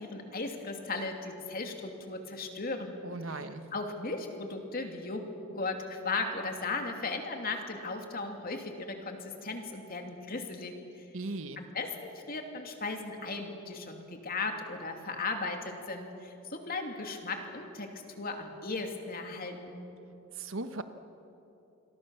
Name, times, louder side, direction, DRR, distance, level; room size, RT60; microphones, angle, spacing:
voice 1, 0.0-3.0 3.3-3.4 3.7-5.2 5.5-11.0 11.6-19.9, left 3 dB, 45° left, 4 dB, 2.8 m, -37 dB
voice 2, 3.0-3.7 11.1-11.6 20.4-20.8, right 2 dB, 75° right, 9 dB, 1.4 m, -37 dB
27.5 x 22.0 x 7.1 m, 2.8 s
head